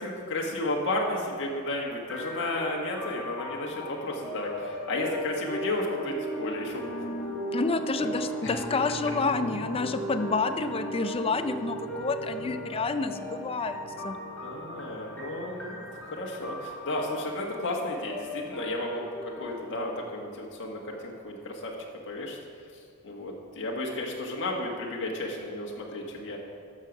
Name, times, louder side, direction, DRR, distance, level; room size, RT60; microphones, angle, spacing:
voice 1, 0.0-7.3 8.0-8.1 8.4-8.5 14.4-21.7 22.1-22.4 22.7-26.4, left 1 dB, 55° left, -1 dB, 1.5 m, -33 dB
sound 1, 2.1-19.7, equal, 5° left, 3.1 m, -37 dB
voice 2, 7.5-13.8 14.0-14.2, left 4 dB, 25° left, 10 dB, 0.4 m, -29 dB
13.0 x 6.5 x 5.3 m, 2.3 s
head